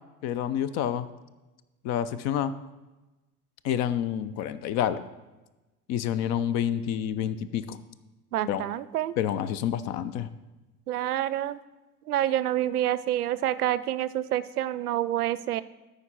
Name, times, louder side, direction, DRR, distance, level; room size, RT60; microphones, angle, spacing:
voice 1, 0.2-1.0 1.8-2.5 3.6-5.0 5.9-7.8 8.5-8.6 9.2-10.3, left 10 dB, 35° left, 14 dB, 0.5 m, -28 dB
voice 2, 8.3-9.2 10.9-11.6 12.1-15.6, right 12 dB, 80° right, 16 dB, 0.5 m, -27 dB
13.5 x 5.1 x 4.3 m, 1.1 s
figure-of-eight pair, 75°, 46 cm